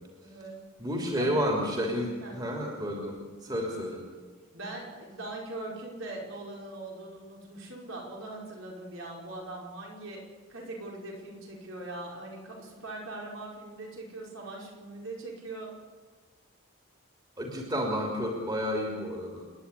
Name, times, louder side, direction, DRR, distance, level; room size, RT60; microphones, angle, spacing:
voice 1, 0.2-0.6 1.2-1.3 2.2-2.4 4.5-10.2 10.5-15.7, right 2 dB, 65° right, -2 dB, 5.2 m, -41 dB
voice 2, 0.8-3.2 3.4-4.0 17.4-19.4, equal, 20° right, 0 dB, 3.1 m, -30 dB
29.0 x 10.5 x 9.8 m, 1.4 s
head